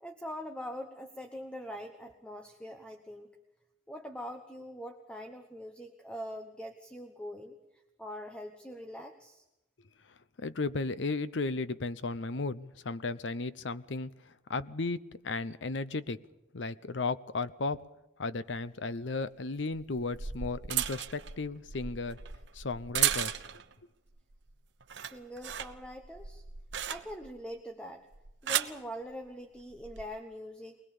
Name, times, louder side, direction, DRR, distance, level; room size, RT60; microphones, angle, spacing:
voice 1, 0.0-3.3 3.9-7.6 8.0-9.4 25.0-26.4 26.9-28.1 28.4-30.8, equal, 5° left, 5 dB, 1.1 m, -43 dB
voice 2, 10.4-16.2 16.5-17.8 18.2-22.2 22.5-23.4, left 3 dB, 75° left, 15 dB, 0.7 m, -35 dB
sound 1, 18.5-18.6 19.8-23.7 24.2-24.5 24.8-27.4 28.1-28.8 29.7-30.0, right 10 dB, 75° right, 1.0 m, -35 dB
23.0 x 20.5 x 7.1 m, 0.94 s
head